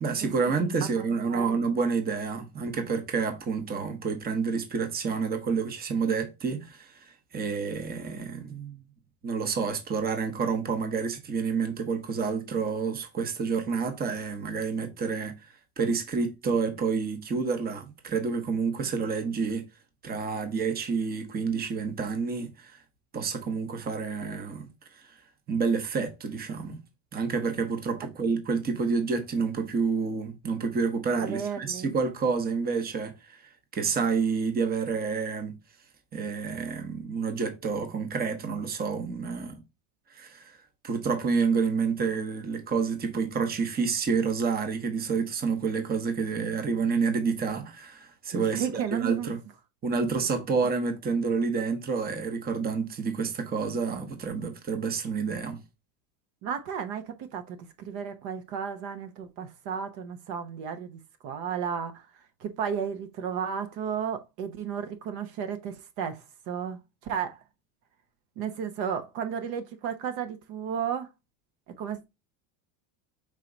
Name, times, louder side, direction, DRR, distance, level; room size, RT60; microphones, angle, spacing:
voice 1, 0.0-6.9 7.3-8.8 9.2-15.3 15.8-19.7 20.0-22.8 23.1-24.7 25.5-26.8 27.1-35.5 36.1-39.6 40.1-40.6 40.8-49.4 49.8-55.6, right 5 dB, 20° right, 0.9 m, -29 dB
voice 2, 1.2-1.6 31.2-31.9 48.3-49.3 56.4-62.0 62.4-67.4 68.4-71.1 71.8-72.0, right 7 dB, 55° right, 0.8 m, -33 dB
4.8 x 2.9 x 3.8 m
supercardioid pair, 125°, 45 cm